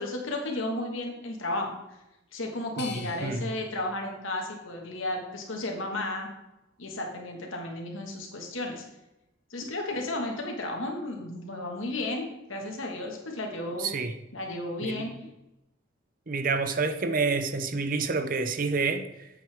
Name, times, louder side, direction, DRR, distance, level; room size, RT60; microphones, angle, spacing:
voice 1, 0.0-1.7 2.3-6.3 6.8-8.8 9.5-12.2 12.5-13.9 14.3-15.1, left 2 dB, 85° left, 1.7 m, -33 dB
sound 1, 2.8-5.7 6.2-7.1, left 7 dB, 55° left, 1.1 m, -49 dB
voice 2, 2.8-3.5 9.6-9.7 13.8-14.2 14.8-15.1 16.3-19.3, right 4 dB, 45° right, 0.6 m, -29 dB
8.8 x 8.0 x 3.5 m
head